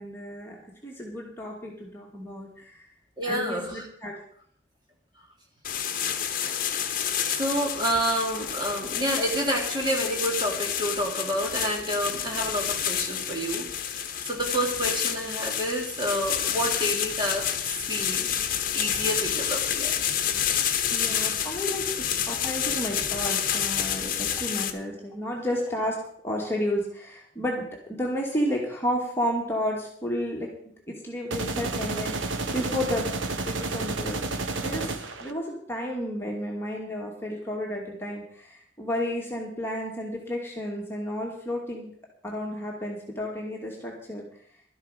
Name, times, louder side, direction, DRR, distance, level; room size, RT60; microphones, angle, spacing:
voice 1, 0.0-2.9 3.3-4.1 20.9-26.0 26.2-33.1 33.4-34.3 34.6-34.9 35.2-41.9 42.2-44.3, equal, 10° left, -2 dB, 2.3 m, -32 dB
voice 2, 3.2-3.8 7.3-18.3 18.7-20.0, equal, 25° right, -1 dB, 2.8 m, -29 dB
sound 1, 5.6-24.7, left 9 dB, 45° left, 1.1 m, -29 dB
sound 2, 31.3-35.3, right 3 dB, 90° right, 1.2 m, -30 dB
12.5 x 12.0 x 5.1 m, 0.63 s
head